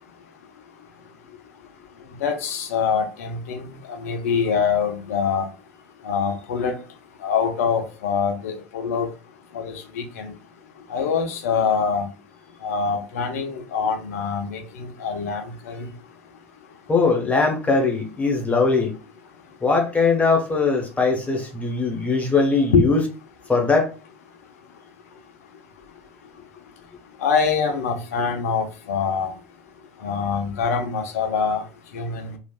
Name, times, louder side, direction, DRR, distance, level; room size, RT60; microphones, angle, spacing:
voice 1, 2.2-3.7 4.0-5.5 6.0-6.8 7.2-9.1 9.5-10.3 10.9-12.0 12.6-15.9 22.7-22.9 27.2-29.3 30.0-31.6 31.9-32.3, left 6 dB, 70° left, 5 dB, 0.7 m, -24 dB
voice 2, 16.9-18.9 19.6-23.0 23.5-23.9, left 4 dB, 15° left, 1 dB, 1.1 m, -20 dB
3.1 x 2.5 x 2.4 m, 0.32 s
figure-of-eight pair, 75°, 8 cm